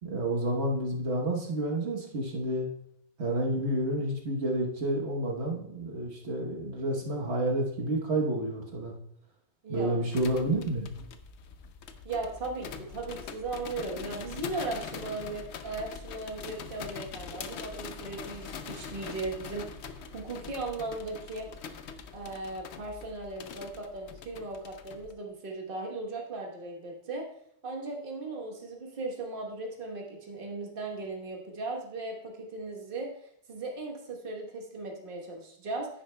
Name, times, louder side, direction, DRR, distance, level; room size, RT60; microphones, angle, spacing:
voice 1, 0.0-2.7 3.2-8.9 9.7-10.9, right 1 dB, 75° right, -1 dB, 1.4 m, -30 dB
voice 2, 9.6-10.0 12.0-19.7 20.1-21.5 22.1-27.3 27.6-33.1 33.5-35.9, right 3 dB, 55° right, -1 dB, 1.4 m, -37 dB
sound 1, 10.1-25.1, left 6 dB, 80° left, 0.9 m, -43 dB
9.9 x 9.5 x 2.2 m, 0.74 s
omnidirectional pair, 1.1 m